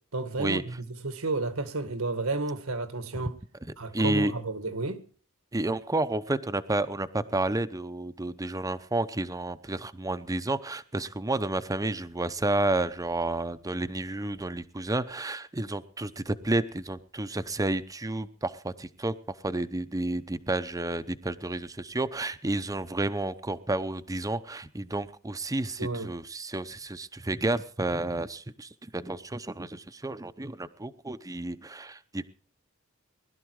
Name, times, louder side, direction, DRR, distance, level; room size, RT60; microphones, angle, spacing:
voice 1, 0.1-3.3 3.8-5.0 25.8-26.1, right 3 dB, 85° right, 1.9 m, -32 dB
voice 2, 3.9-4.3 5.5-32.3, right 2 dB, 15° right, 0.7 m, -31 dB
20.5 x 12.0 x 4.8 m
head